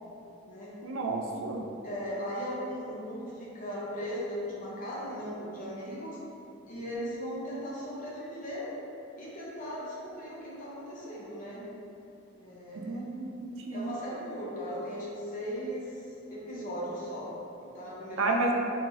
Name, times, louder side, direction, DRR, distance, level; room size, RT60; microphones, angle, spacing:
voice 1, 0.8-1.6 12.8-13.9 18.2-18.5, right 2 dB, 75° right, 1 dB, 0.4 m, -31 dB
voice 2, 1.8-6.2 6.7-8.7 9.2-11.6 12.4-13.0 13.7-15.9 16.3-17.3 17.6-18.5, equal, 40° left, -6 dB, 0.8 m, -38 dB
3.5 x 2.8 x 3.0 m, 2.7 s
head